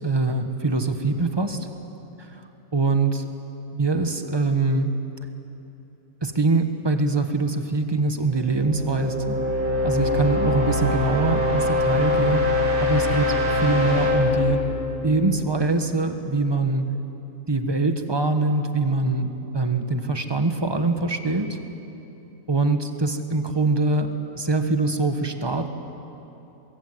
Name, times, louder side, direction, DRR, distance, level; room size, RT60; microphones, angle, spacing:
voice 1, 0.0-1.6 2.7-3.2 3.7-4.9 6.2-9.4 9.8-12.4 12.8-14.6 15.0-16.9 17.5-19.3 19.5-21.6 22.5-25.7, right 3 dB, 20° right, 7 dB, 1.3 m, -23 dB
sound 1, 8.2-16.0, left 2 dB, 35° right, 5.1 m, -24 dB
23.0 x 23.0 x 8.0 m, 2.9 s
omnidirectional pair, 1.5 m